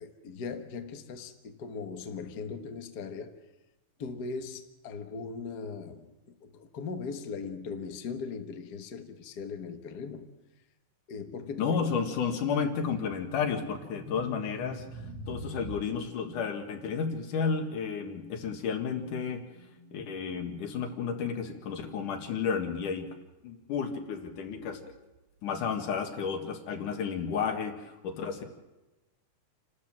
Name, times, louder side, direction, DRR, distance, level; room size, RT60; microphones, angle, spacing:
voice 1, 0.0-3.4 4.0-10.3 11.1-12.0, left 5 dB, 50° left, 1.3 m, -39 dB
voice 2, 11.6-14.8 15.3-19.4 19.9-23.1 23.4-24.8 25.4-28.4, left 6 dB, 80° left, 3.4 m, -32 dB
sound 1, 12.9-22.9 23.1-23.4 24.2-25.2, right 1 dB, 60° right, 3.0 m, -47 dB
28.5 x 13.0 x 7.6 m
omnidirectional pair, 3.6 m